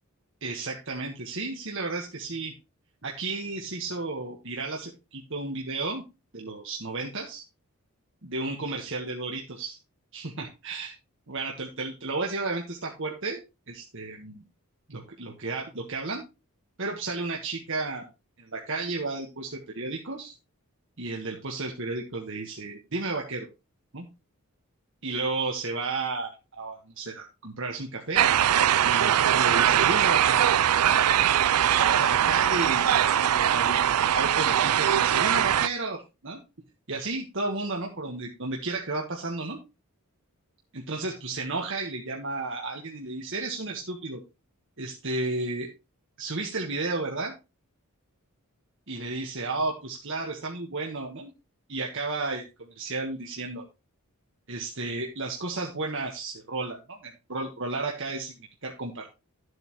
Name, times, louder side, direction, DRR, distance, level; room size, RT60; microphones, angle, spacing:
voice 1, 0.4-2.5 3.0-6.0 6.3-7.4 8.2-9.8 10.1-10.9 11.3-13.4 13.7-14.4 14.9-16.2 16.8-18.1 18.4-20.3 21.0-23.5 23.9-24.1 25.0-28.3 28.8-30.5 30.8-30.9 31.8-36.4 36.9-39.6 40.7-44.2 44.8-45.7 46.2-47.3 48.9-51.3 51.7-53.6 54.5-59.1, right 3 dB, 60° right, 1 dB, 1.6 m, -33 dB
sound 1, 28.1-35.7, right 10 dB, 90° right, 0.4 m, -21 dB
12.5 x 8.0 x 3.1 m, 0.26 s
head